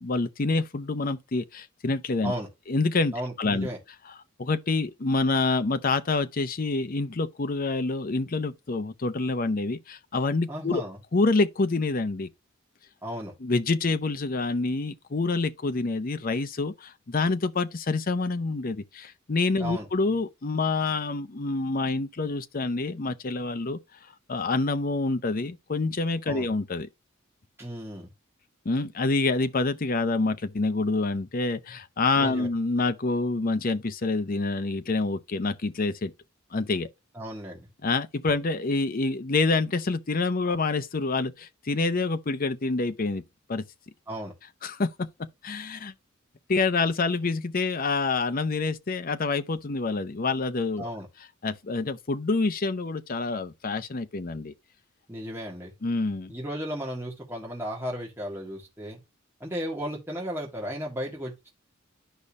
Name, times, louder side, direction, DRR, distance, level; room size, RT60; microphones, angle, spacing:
voice 1, 0.0-2.3 2.7-3.7 4.4-10.8 11.1-12.3 13.4-23.8 24.3-26.9 28.6-36.1 36.5-36.9 37.8-43.2 43.5-43.6 44.6-45.9 46.5-50.9 51.4-54.5 55.8-56.3, left 3 dB, 40° left, 0.6 m, -27 dB
voice 2, 3.1-3.8 10.5-11.0 13.0-13.3 19.6-19.9 26.3-26.5 27.6-28.1 32.2-32.5 37.1-37.7 44.1-44.3 50.8-51.1 55.1-55.7 56.3-59.0 59.4-61.5, equal, 10° right, 1.8 m, -34 dB
10.0 x 5.4 x 2.4 m
head